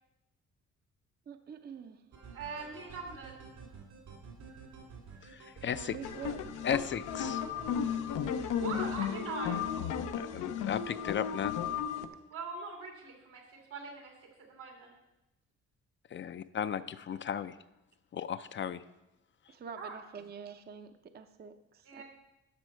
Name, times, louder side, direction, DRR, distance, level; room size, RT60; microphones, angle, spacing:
voice 1, 1.3-2.0 5.7-6.4 19.5-22.0, right 6 dB, 35° right, 9 dB, 0.6 m, -46 dB
sound 1, 2.1-9.0, right 5 dB, 70° right, 2.4 m, -50 dB
voice 2, 2.3-3.4 8.6-9.6 12.3-13.4 13.7-14.9 19.8-20.0 21.8-22.0, right 4 dB, 90° right, 1 dB, 2.7 m, -42 dB
voice 3, 5.2-6.0 6.6-7.4 10.1-11.5 16.1-17.6 18.1-18.8, left 8 dB, 40° left, 13 dB, 0.4 m, -35 dB
sound 2, 6.0-12.1, left 8 dB, 90° left, 0.7 m, -34 dB
12.0 x 6.1 x 4.4 m, 0.94 s
cardioid pair, 90°, 30 cm